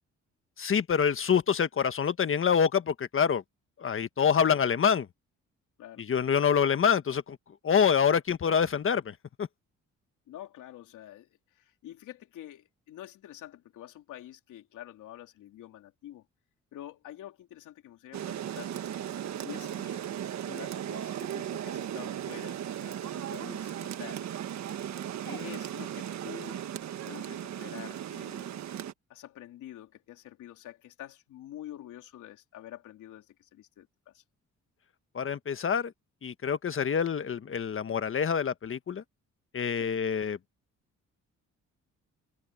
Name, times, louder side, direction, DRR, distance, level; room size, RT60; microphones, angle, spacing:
voice 1, 0.6-3.4 3.8-5.1 6.0-7.4 7.6-9.5 35.1-35.9 36.2-39.0 39.5-40.4, left 7 dB, 45° left, 1.4 m, -26 dB
voice 2, 10.3-16.2 16.7-18.7 19.4-20.0 20.4-24.3 25.2-26.7 27.0-28.6 29.1-34.2 39.8-40.0, left 12 dB, 85° left, 3.4 m, -47 dB
Rain, 18.1-28.9, right 10 dB, 65° right, 1.5 m, -36 dB
cardioid pair, 90°, 30 cm